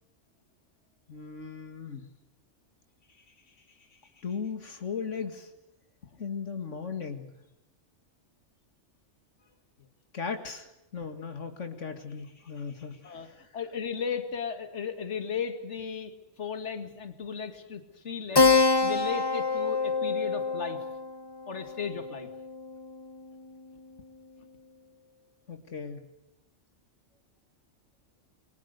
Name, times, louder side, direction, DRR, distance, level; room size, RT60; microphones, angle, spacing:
voice 1, 1.1-2.1 3.2-3.3 3.8-5.5 6.2-7.3 10.1-13.5 25.5-26.1, left 5 dB, 85° left, 7 dB, 2.4 m, -37 dB
voice 2, 13.0-18.5 18.8-20.8 21.5-22.3, left 6 dB, 70° left, 8 dB, 2.3 m, -35 dB
Keyboard (musical), 18.3-23.3, left 4 dB, 20° left, 1.2 m, -26 dB
28.0 x 23.0 x 6.7 m, 0.86 s
omnidirectional pair, 1.2 m